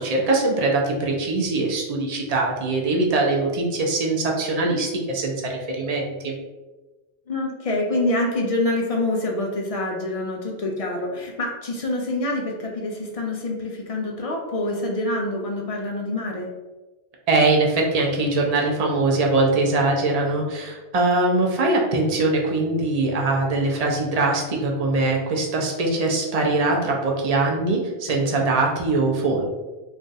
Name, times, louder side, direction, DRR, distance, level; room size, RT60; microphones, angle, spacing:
voice 1, 0.0-6.3 17.3-29.5, right 2 dB, 45° right, -1 dB, 0.6 m, -22 dB
voice 2, 7.3-16.5, left 2 dB, 65° left, 0 dB, 0.3 m, -26 dB
2.5 x 2.3 x 3.9 m, 1.2 s
omnidirectional pair, 1.2 m